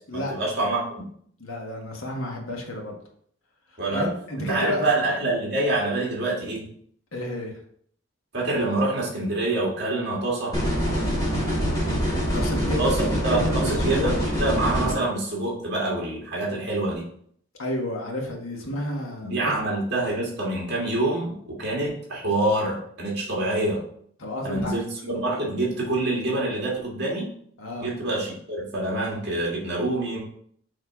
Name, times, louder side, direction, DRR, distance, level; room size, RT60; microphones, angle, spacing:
voice 1, 0.1-1.1 3.8-4.1 4.4-6.7 8.3-10.6 12.8-13.0 13.2-17.1 19.2-23.8 24.4-27.3 27.8-30.2, right 2 dB, 50° right, -4 dB, 2.1 m, -26 dB
voice 2, 1.4-3.0 3.9-4.8 7.1-7.6 12.3-13.0 13.3-14.1 17.6-19.5 24.2-24.8 27.6-27.9, left 1 dB, 80° left, 0 dB, 1.5 m, -30 dB
sound 1, 10.5-14.9, equal, 20° left, 1.6 m, -25 dB
6.6 x 3.2 x 4.9 m, 0.63 s
head